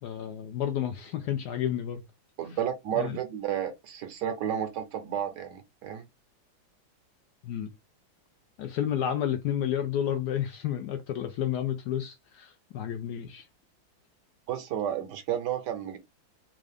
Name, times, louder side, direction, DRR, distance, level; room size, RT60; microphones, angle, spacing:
voice 1, 0.0-2.0 2.5-2.6 3.0-3.2 7.4-7.7 8.6-13.5, left 10 dB, 75° left, 1.0 m, -31 dB
voice 2, 2.4-6.0 14.5-16.0, right 9 dB, 70° right, 1.1 m, -32 dB
3.6 x 2.4 x 3.3 m
omnidirectional pair, 2.1 m